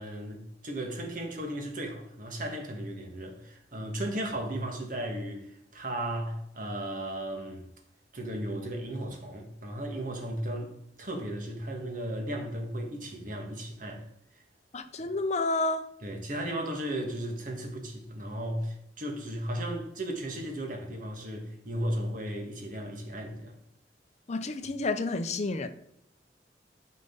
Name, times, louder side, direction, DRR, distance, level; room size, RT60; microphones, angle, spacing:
voice 1, 0.0-7.6 8.1-14.4 15.0-15.1 16.0-23.6, right 1 dB, 50° right, 1.7 m, -35 dB
voice 2, 14.7-15.9 24.3-25.7, left 2 dB, 40° left, 0.6 m, -30 dB
9.2 x 5.2 x 3.9 m
head